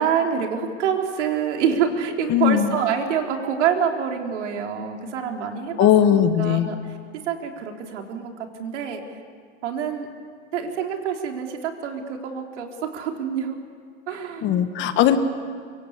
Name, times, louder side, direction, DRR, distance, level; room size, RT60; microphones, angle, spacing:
voice 1, 0.0-6.8 7.3-8.3 8.6-9.0 9.6-10.1 10.5-13.6 14.1-14.6, right 7 dB, 65° right, 3 dB, 3.9 m, -26 dB
voice 2, 2.3-2.7 5.8-6.7 14.4-15.2, left 10 dB, 30° left, 9 dB, 1.5 m, -18 dB
24.5 x 24.0 x 8.3 m, 2.1 s
hypercardioid pair, 135°, 37 cm